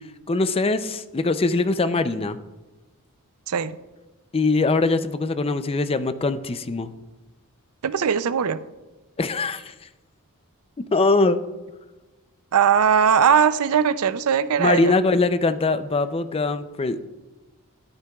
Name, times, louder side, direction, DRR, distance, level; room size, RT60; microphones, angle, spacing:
voice 1, 0.3-2.4 4.3-6.9 9.2-9.7 10.8-11.4 14.6-17.1, left 3 dB, 25° left, 11 dB, 0.4 m, -22 dB
voice 2, 7.8-8.6 12.5-14.9, right 7 dB, 75° right, 14 dB, 0.5 m, -19 dB
13.0 x 11.5 x 2.3 m, 1.1 s
head